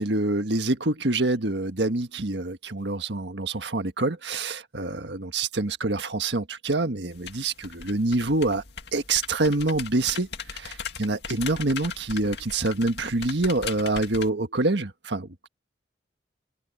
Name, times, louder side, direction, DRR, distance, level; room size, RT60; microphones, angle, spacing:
voice 1, 0.0-8.6 8.9-15.5, right 2 dB, 70° right, 1.6 m, -26 dB
sound 1, 7.1-14.3, left 6 dB, 65° left, 2.2 m, -39 dB
head